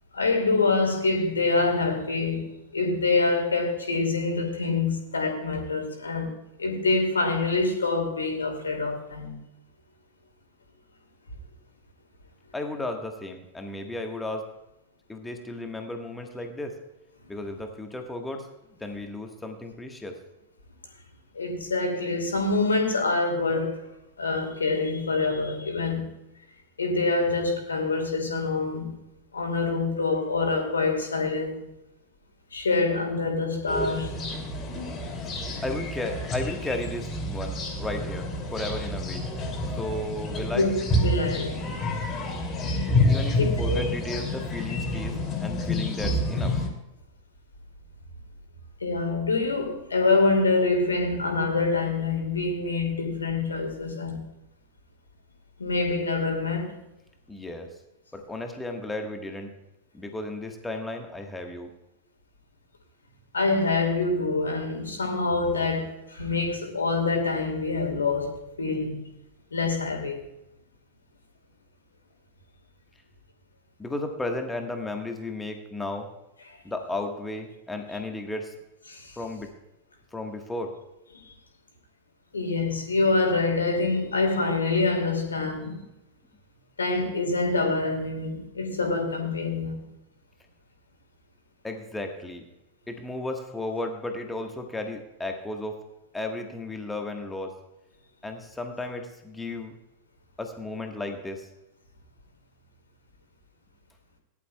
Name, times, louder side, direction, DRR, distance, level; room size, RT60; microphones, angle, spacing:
voice 1, 0.1-2.4 2.7-6.3 6.6-9.4 21.3-23.8 24.2-26.1 26.8-28.9 29.3-31.6 32.5-34.1 40.5-40.7 41.0-41.7 43.4-43.8 48.8-54.2 55.6-56.8 63.3-69.1 69.5-70.2 78.9-79.2 82.3-85.8 86.8-89.8, left 3 dB, 75° left, 2.5 m, -26 dB
voice 2, 12.5-14.4 15.1-16.8 17.3-18.5 18.8-20.2 35.2-39.3 39.7-40.7 43.1-46.6 57.3-57.7 58.1-59.5 59.9-61.7 73.8-76.1 76.6-78.5 79.2-79.5 80.1-80.7 91.6-92.4 92.9-95.8 96.1-97.5 98.2-99.7 100.4-101.5, left 2 dB, 10° left, 1.4 m, -34 dB
sound 1, 33.7-46.7, left 1 dB, 25° left, 2.7 m, -28 dB
19.0 x 11.0 x 2.3 m
figure-of-eight pair, 90°, 0 cm